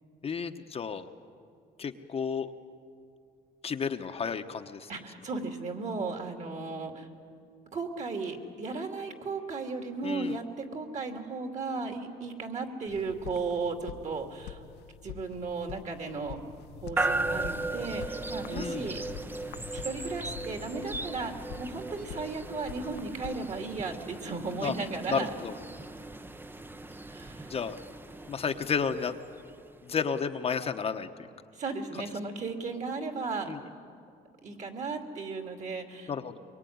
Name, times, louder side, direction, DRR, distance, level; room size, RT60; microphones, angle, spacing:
voice 1, 0.2-1.1 1.8-2.5 3.6-4.9 10.0-10.3 18.5-18.9 24.6-24.7 25.1-25.5 27.5-27.8 28.3-29.2 29.8-31.1 33.5-33.6 36.1-36.4, left 6 dB, 35° left, 6 dB, 1.0 m, -32 dB
voice 2, 4.9-7.1 7.7-14.6 15.0-16.4 16.8-19.0 19.7-25.3 27.1-27.5 31.5-33.5 34.4-36.1, right 4 dB, 45° right, 4 dB, 2.8 m, -35 dB
sound 1, 12.9-23.8, left 11 dB, 75° left, 0.8 m, -46 dB
sound 2, 17.0-30.0, right 2 dB, 10° right, 0.7 m, -37 dB
23.5 x 23.0 x 9.5 m, 2.3 s
cardioid pair, 110°, 17 cm